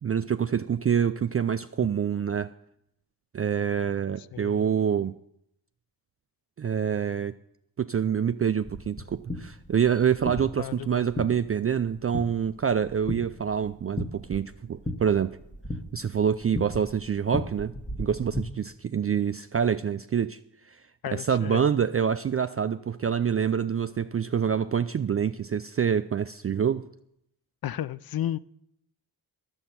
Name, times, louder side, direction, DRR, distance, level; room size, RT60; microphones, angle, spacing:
voice 1, 0.0-2.5 3.3-5.1 6.6-7.3 7.8-15.4 15.9-17.7 18.0-20.4 20.7-20.8 21.1-26.8, right 8 dB, 35° right, 0.4 m, -26 dB
voice 2, 4.3-4.6 10.6-11.0 21.0-21.6 27.6-28.4, left 12 dB, 50° left, 0.5 m, -33 dB
sound 1, 8.6-18.4, left 1 dB, 15° left, 1.4 m, -37 dB
11.0 x 7.9 x 5.8 m
supercardioid pair, 45°, 47 cm